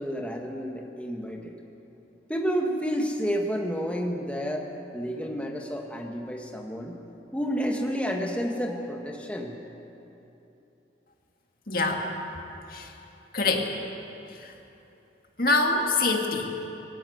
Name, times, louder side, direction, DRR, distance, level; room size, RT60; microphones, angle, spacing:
voice 1, 0.0-1.5 2.3-4.7 4.9-7.0 7.3-9.5, equal, 5° left, 1 dB, 1.7 m, -30 dB
voice 2, 11.7-12.1 12.7-12.9 13.3-13.7 14.4-14.5 15.4-16.5, left 3 dB, 50° left, 2 dB, 2.2 m, -25 dB
19.5 x 17.5 x 8.0 m, 2.9 s
head